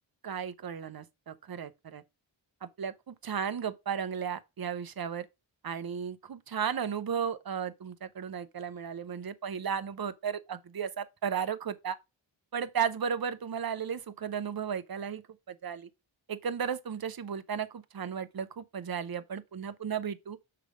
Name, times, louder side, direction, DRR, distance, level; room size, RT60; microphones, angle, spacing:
voice 1, 0.2-2.0 2.6-5.3 5.6-12.0 12.5-15.2 15.5-15.9 16.3-20.4, right 7 dB, 50° right, 0.7 m, -34 dB
6.7 x 3.3 x 5.0 m
wide cardioid pair, 75°, 48 cm